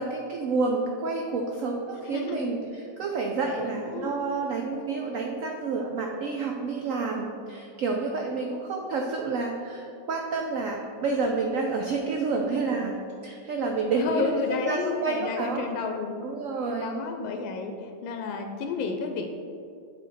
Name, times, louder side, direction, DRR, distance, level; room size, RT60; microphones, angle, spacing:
voice 1, 0.0-15.7 16.2-17.0, right 3 dB, 80° right, 1 dB, 0.7 m, -29 dB
voice 2, 2.1-2.5 3.5-4.2 14.0-16.2 16.8-17.7 18.0-19.3, left 5 dB, 90° left, 5 dB, 1.3 m, -31 dB
8.2 x 3.9 x 4.1 m, 2.4 s
omnidirectional pair, 2.0 m